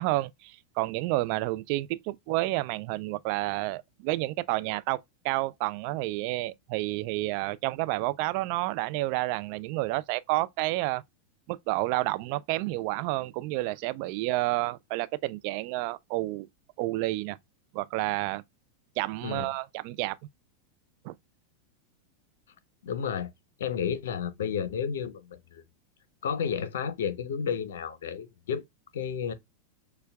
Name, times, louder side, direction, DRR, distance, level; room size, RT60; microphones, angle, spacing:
voice 1, 0.0-11.0 11.5-16.5 16.8-17.4 17.7-18.4 19.0-20.2 21.0-21.1, right 19 dB, 55° right, 0.3 m, -30 dB
voice 2, 19.2-19.5 22.8-23.3 23.6-25.6 26.2-28.6 28.9-29.3, left 7 dB, 80° left, 0.8 m, -31 dB
6.7 x 2.2 x 2.2 m
hypercardioid pair, 110°, 0 cm